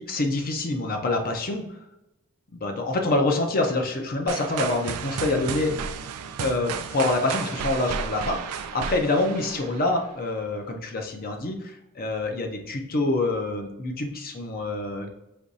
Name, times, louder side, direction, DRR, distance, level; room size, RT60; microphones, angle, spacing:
voice 1, 0.0-1.7 2.6-5.7 6.4-15.1, left 2 dB, 40° left, 3 dB, 0.7 m, -26 dB
sound 1, 4.3-10.2, right 6 dB, 90° right, 0.4 m, -33 dB
5.1 x 3.0 x 2.7 m, 0.89 s
head